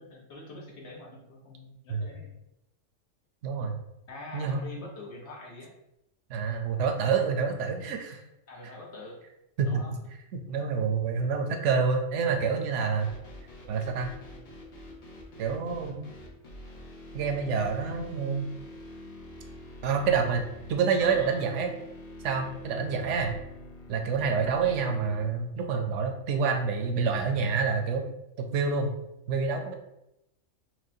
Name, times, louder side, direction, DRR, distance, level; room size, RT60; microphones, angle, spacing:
voice 1, 0.0-2.3 4.1-5.7 8.5-9.2 9.7-9.9 21.0-21.5 23.0-23.4 24.6-24.8, left 1 dB, 60° left, -2 dB, 1.2 m, -45 dB
voice 2, 3.4-3.8 4.3-4.7 6.3-8.2 9.6-9.8 10.3-13.1 13.7-14.1 15.4-16.0 17.1-18.5 19.8-21.7 22.2-23.3 23.9-28.1 28.4-28.9 29.3-29.7, right 5 dB, 70° right, 4 dB, 0.9 m, -27 dB
sound 1, 13.0-25.2, left 1 dB, 45° left, 0.7 m, -46 dB
5.9 x 2.2 x 2.6 m, 0.86 s
omnidirectional pair, 1.3 m